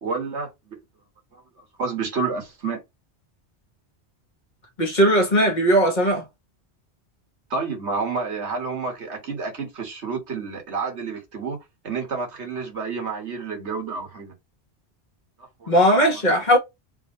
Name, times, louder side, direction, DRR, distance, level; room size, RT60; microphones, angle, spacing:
voice 1, 0.0-0.8 1.3-1.4 1.8-2.8 7.5-11.6 11.8-14.3 15.6-16.2, right 4 dB, 80° right, 1.8 m, -29 dB
voice 2, 4.8-6.3 15.7-16.6, equal, 45° left, 1.3 m, -18 dB
3.6 x 2.6 x 4.2 m
omnidirectional pair, 1.1 m